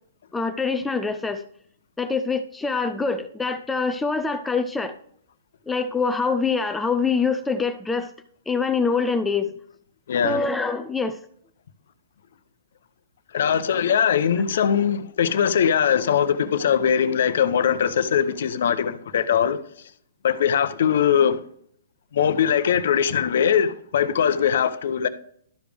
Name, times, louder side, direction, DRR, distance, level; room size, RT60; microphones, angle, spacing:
voice 1, 0.3-1.4 2.0-4.9 5.7-8.1 8.5-9.5 10.2-11.2, left 4 dB, 5° left, 0.3 m, -24 dB
voice 2, 10.1-10.5 13.3-19.6 20.2-21.4 22.1-25.1, left 8 dB, 65° left, 0.7 m, -21 dB
12.5 x 5.1 x 3.4 m
hypercardioid pair, 160°, 0 cm